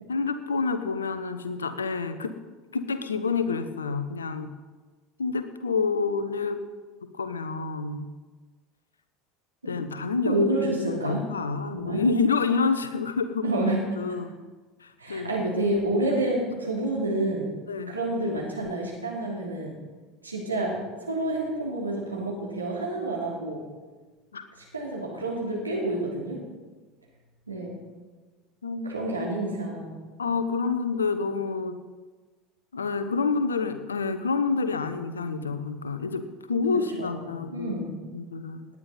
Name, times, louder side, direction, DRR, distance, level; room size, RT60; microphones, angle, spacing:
voice 1, 0.1-2.3 2.7-4.5 5.2-6.6 7.0-8.1 9.7-13.4 14.0-14.3 14.8-15.3 17.7-18.0 24.3-24.4 28.6-28.9 30.2-31.8 32.7-37.8 38.1-38.6, left 4 dB, 80° left, 11 dB, 0.9 m, -28 dB
voice 2, 10.2-11.3 11.7-12.0 13.4-13.8 15.0-17.5 17.9-19.7 20.2-20.8 21.0-23.6 24.7-26.4 27.5-27.7 28.8-29.9 37.0-37.9, right 1 dB, 90° right, -3 dB, 3.1 m, -28 dB
18.0 x 9.8 x 4.3 m, 1.3 s
figure-of-eight pair, 75°, 0 cm